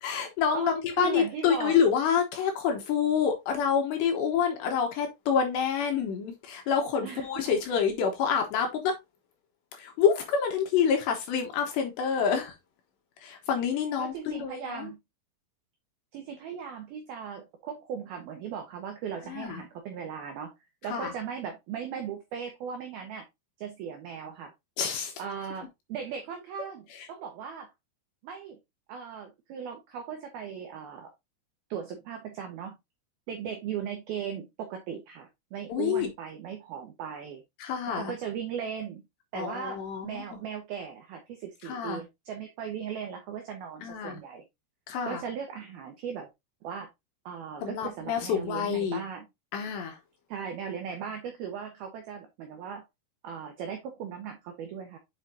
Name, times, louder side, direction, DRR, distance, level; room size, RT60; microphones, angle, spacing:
voice 1, 0.0-8.9 9.7-12.6 13.2-14.9 19.3-19.6 20.9-21.1 24.8-25.1 26.9-27.1 35.7-36.1 37.6-38.1 39.3-40.4 41.6-42.0 43.8-44.2 44.9-45.2 47.6-49.0 49.5-50.0, left 7 dB, 75° left, 2.9 m, -27 dB
voice 2, 0.5-1.8 7.0-7.4 14.0-15.0 16.1-20.5 20.8-23.3 23.6-24.5 25.2-27.7 28.2-28.6 28.9-31.1 31.7-32.8 33.3-37.4 37.9-39.0 39.3-44.4 45.0-46.3 46.6-46.9 47.3-49.3 50.3-52.8 53.2-55.0, right 7 dB, 85° right, 2.1 m, -38 dB
7.9 x 5.6 x 2.7 m
omnidirectional pair, 6.0 m